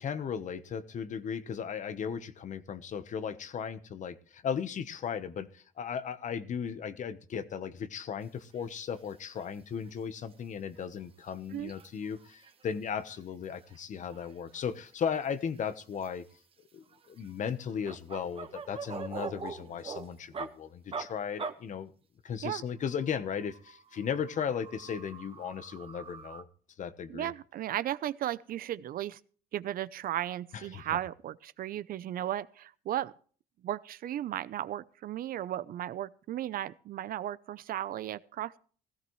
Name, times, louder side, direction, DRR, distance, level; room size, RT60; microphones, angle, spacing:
voice 1, 0.0-16.2 16.7-21.9 22.2-26.5 26.8-27.3 30.5-31.0, left 7 dB, 45° left, 1.1 m, -36 dB
sound 1, 8.5-8.7 9.0-9.1 9.4-9.5 9.8-9.9 10.3-10.4 10.8-12.7 13.0-13.2 13.4-15.2 15.6-16.3 16.9-20.5 20.9-21.1 21.4-21.5 22.7-26.4, right 5 dB, 35° right, 1.4 m, -44 dB
voice 2, 27.1-29.2 29.5-33.1 33.6-38.6, right 12 dB, 60° right, 0.7 m, -35 dB
16.5 x 15.0 x 3.2 m
cardioid pair, 110°, 17 cm